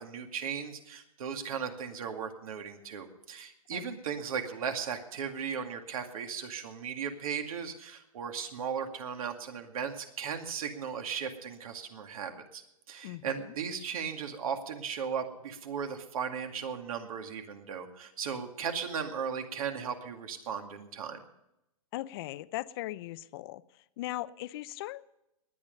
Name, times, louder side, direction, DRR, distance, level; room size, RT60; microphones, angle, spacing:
voice 1, 0.0-12.6 12.9-21.2, right 7 dB, 70° right, 5 dB, 2.3 m, -36 dB
voice 2, 13.0-13.5 21.9-23.6 24.0-25.0, left 16 dB, 40° left, 16 dB, 0.6 m, -38 dB
20.5 x 9.3 x 5.3 m, 0.86 s
hypercardioid pair, 150°, 19 cm